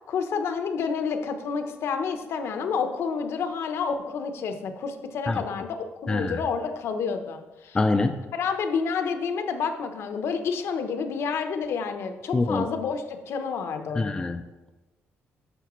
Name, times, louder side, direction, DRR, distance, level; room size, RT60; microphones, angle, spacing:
voice 1, 0.1-7.8 8.3-14.3, left 5 dB, 65° left, 7 dB, 0.8 m, -29 dB
voice 2, 6.1-6.4 7.7-8.1 12.3-12.7 14.0-14.4, left 3 dB, 15° left, 5 dB, 0.3 m, -24 dB
9.9 x 6.8 x 3.1 m, 1.1 s
cardioid pair, 155°, 5 cm